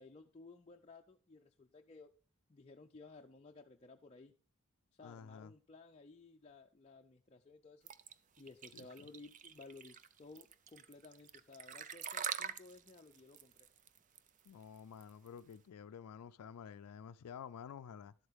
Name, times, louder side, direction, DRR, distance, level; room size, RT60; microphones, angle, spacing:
voice 1, 0.0-2.1 2.5-4.3 4.9-7.9 8.4-13.7, left 3 dB, 25° left, 0.5 m, -57 dB
voice 2, 5.0-5.5 8.7-9.1 14.5-18.1, left 7 dB, 90° left, 0.4 m, -51 dB
sound 1, 7.9-15.5, right 8 dB, 35° right, 0.4 m, -45 dB
12.0 x 8.0 x 3.5 m
head